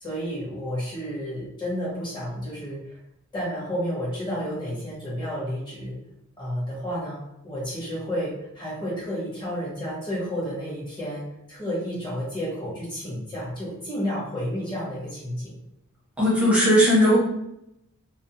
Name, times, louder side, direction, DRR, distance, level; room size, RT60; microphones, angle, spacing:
voice 1, 0.0-3.0 3.3-6.0 6.4-15.5, equal, 20° left, -7 dB, 1.0 m, -31 dB
voice 2, 16.2-17.2, equal, 5° right, -7 dB, 0.7 m, -18 dB
2.5 x 2.0 x 2.8 m, 0.82 s
head